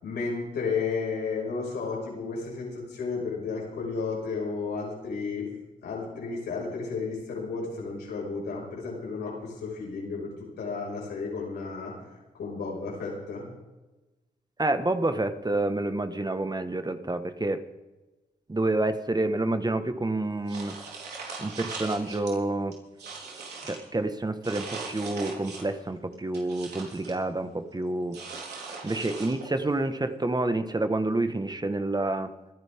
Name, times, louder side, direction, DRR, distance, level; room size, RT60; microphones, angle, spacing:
voice 1, 0.0-5.5 5.8-11.9 12.3-13.4, left 4 dB, 85° left, -3 dB, 5.7 m, -33 dB
voice 2, 14.6-17.7 18.5-20.8 21.4-22.7 23.6-28.2 28.8-32.3, right 2 dB, 25° right, 9 dB, 1.5 m, -28 dB
sound 1, 20.5-22.3 22.7-23.9 24.4-25.8 26.1-27.2 28.1-29.6, right 4 dB, 80° right, 4.0 m, -40 dB
25.5 x 11.0 x 3.7 m, 1.1 s
supercardioid pair, 50°, 17 cm